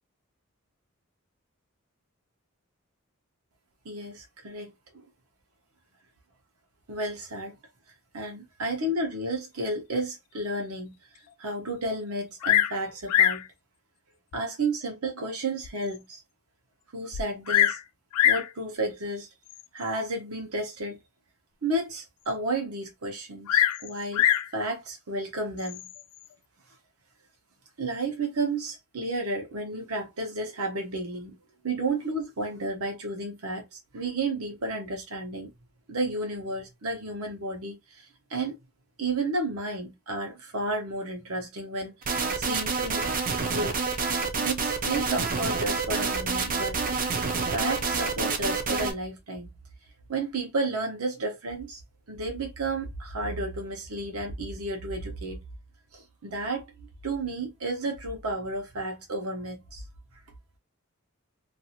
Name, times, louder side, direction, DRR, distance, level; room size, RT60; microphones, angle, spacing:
voice 1, 3.8-4.7 6.9-7.6 8.1-11.0 11.4-13.5 14.3-16.2 16.9-17.8 18.2-19.3 19.7-21.0 21.6-24.3 24.5-25.9 27.8-31.4 31.6-35.5 35.9-38.5 39.0-43.1 43.5-43.7 44.4-46.8 47.5-49.5 50.1-51.8 52.1-55.4 55.9-59.8, right 2 dB, 80° right, 0.9 m, -32 dB
Bird vocalization bird call bird song, 12.4-12.8 13.1-13.5 14.3-14.4 15.0-15.1 15.6-15.7 15.9-16.0 17.1-17.8 18.1-18.5 19.5-19.8 23.5-24.5 25.6-26.0, left 11 dB, 90° left, 0.3 m, -23 dB
sound 1, 42.0-48.9, right 4 dB, 40° right, 0.4 m, -28 dB
2.6 x 2.4 x 2.8 m
head